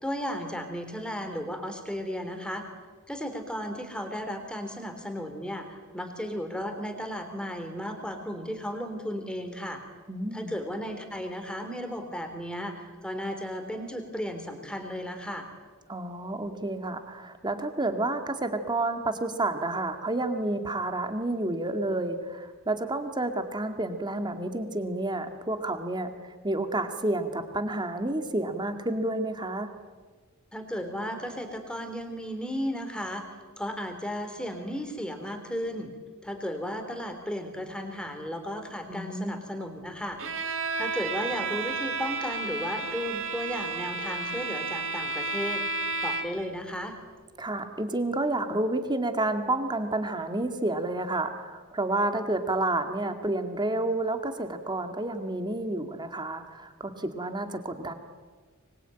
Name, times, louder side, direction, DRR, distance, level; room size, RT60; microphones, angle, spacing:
voice 1, 0.0-2.6 3.1-9.8 10.3-15.5 30.5-33.2 33.6-35.9 36.2-40.2 40.8-45.6 46.0-47.0, equal, 5° left, 6 dB, 3.5 m, -34 dB
voice 2, 10.1-10.5 15.9-29.7 38.9-39.4 47.4-57.9, right 2 dB, 20° right, 7 dB, 2.1 m, -30 dB
Bowed string instrument, 40.2-46.5, right 3 dB, 60° right, 2.5 m, -32 dB
25.0 x 21.5 x 9.2 m, 1.4 s
head